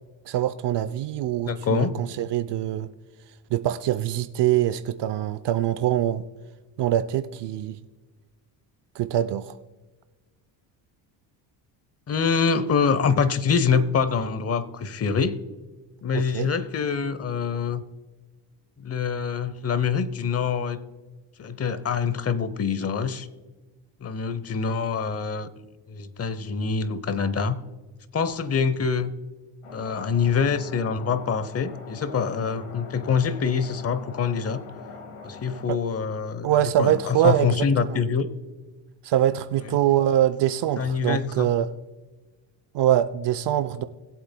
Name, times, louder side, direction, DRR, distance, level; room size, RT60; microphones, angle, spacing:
voice 1, 0.3-2.9 3.5-6.2 6.8-7.8 8.9-9.6 16.1-16.5 35.7-35.8 36.4-38.0 39.0-41.7 42.7-43.8, right 12 dB, 55° right, 11 dB, 0.6 m, -24 dB
voice 2, 1.5-2.0 12.1-15.4 16.0-17.8 18.8-20.8 21.4-23.3 24.0-25.5 25.9-27.6 28.1-29.1 29.7-34.6 35.2-36.5 36.8-38.3 40.8-41.5, left 6 dB, 30° left, 15 dB, 0.8 m, -25 dB
sound 1, 29.6-35.6, left 4 dB, 90° left, 2.0 m, -43 dB
21.0 x 7.9 x 2.2 m, 1.3 s
cardioid pair, 100°, 50 cm